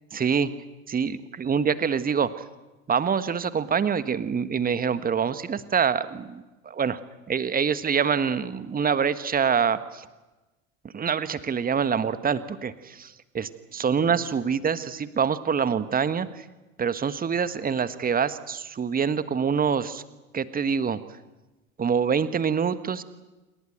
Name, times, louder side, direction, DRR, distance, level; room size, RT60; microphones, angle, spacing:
voice 1, 0.1-0.5 0.9-2.4 2.9-7.0 7.3-10.1 10.9-16.4 16.8-20.0 20.3-21.0 21.8-23.0, right 6 dB, 20° right, 13 dB, 1.6 m, -25 dB
28.0 x 22.0 x 7.9 m, 1.1 s
figure-of-eight pair, 70°, 39 cm